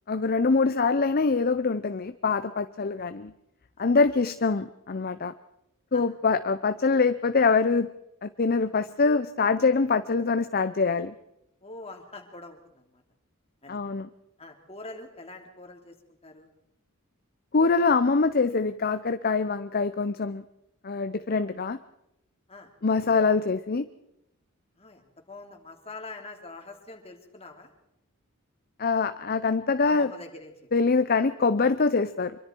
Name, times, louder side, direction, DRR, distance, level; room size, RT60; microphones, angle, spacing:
voice 1, 0.1-3.3 3.8-5.3 5.9-7.9 8.2-11.1 13.7-14.1 17.5-20.4 20.8-21.8 22.8-23.8 28.8-30.1 30.7-32.4, left 4 dB, 45° left, 11 dB, 0.7 m, -24 dB
voice 2, 3.8-4.2 5.9-6.1 11.6-13.0 13.6-13.8 14.4-16.5 22.5-22.7 24.8-27.7 29.8-30.5, left 2 dB, 30° left, 3 dB, 3.1 m, -44 dB
25.5 x 23.5 x 4.6 m, 0.83 s
head